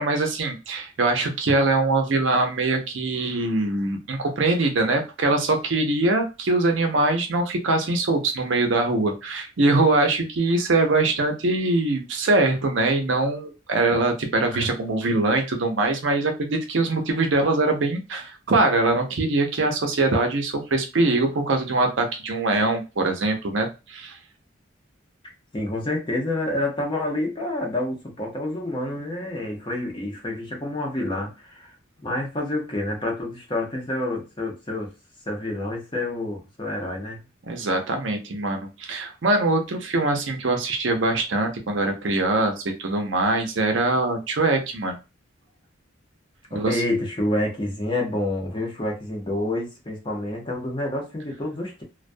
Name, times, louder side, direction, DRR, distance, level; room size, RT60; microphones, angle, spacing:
voice 1, 0.0-24.2 37.4-45.0 46.5-46.8, right 2 dB, 70° right, 4 dB, 0.6 m, -23 dB
voice 2, 25.5-31.8 32.0-34.9 35.3-37.2 46.5-51.8, left 1 dB, 25° left, 0 dB, 0.7 m, -28 dB
2.2 x 2.2 x 2.5 m, 0.28 s
head